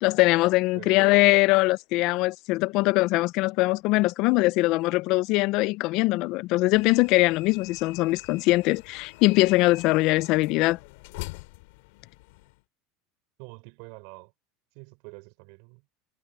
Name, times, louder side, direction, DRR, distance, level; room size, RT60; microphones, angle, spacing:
voice 1, 0.0-10.8, left 21 dB, 50° left, 0.3 m, -22 dB
sound 1, 6.7-12.6, left 23 dB, 75° left, 3.8 m, -44 dB
voice 2, 13.4-14.3 14.7-15.9, right 31 dB, 65° right, 5.8 m, -46 dB
supercardioid pair, 155°, 0 cm